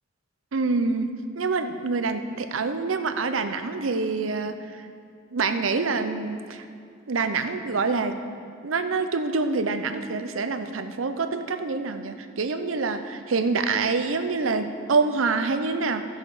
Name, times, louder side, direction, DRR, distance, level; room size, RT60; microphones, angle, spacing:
voice 1, 0.5-4.8 5.3-6.6 7.1-8.2 8.6-16.1, right 4 dB, 80° right, 8 dB, 0.7 m, -26 dB
15.5 x 6.3 x 4.9 m, 2.2 s
head